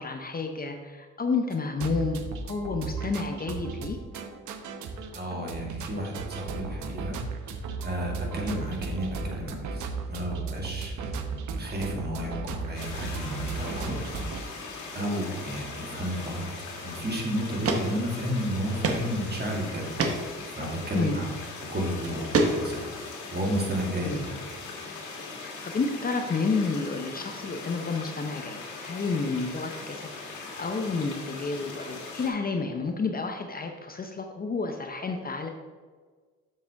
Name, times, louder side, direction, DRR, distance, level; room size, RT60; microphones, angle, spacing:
voice 1, 0.0-2.2 2.4-4.0 20.9-21.2 24.0-24.2 25.3-35.5, left 4 dB, 30° left, 5 dB, 0.7 m, -30 dB
sound 1, 1.5-14.4, right 4 dB, 75° right, 0.9 m, -35 dB
voice 2, 5.1-13.9 14.3-14.7 14.9-16.4 16.8-19.9 20.5-21.3 21.7-23.0 23.3-24.4, equal, 35° right, -1 dB, 2.2 m, -32 dB
sound 2, 12.7-32.3, left 3 dB, 80° left, 2.0 m, -40 dB
sound 3, 17.0-17.1 17.6-17.8 18.1-18.2 18.8-19.0 19.4-19.5 20.0-20.2 21.3-21.5 22.0-22.9, right 3 dB, 50° right, 1.1 m, -25 dB
7.5 x 6.7 x 3.5 m, 1.5 s
cardioid pair, 90°, 30 cm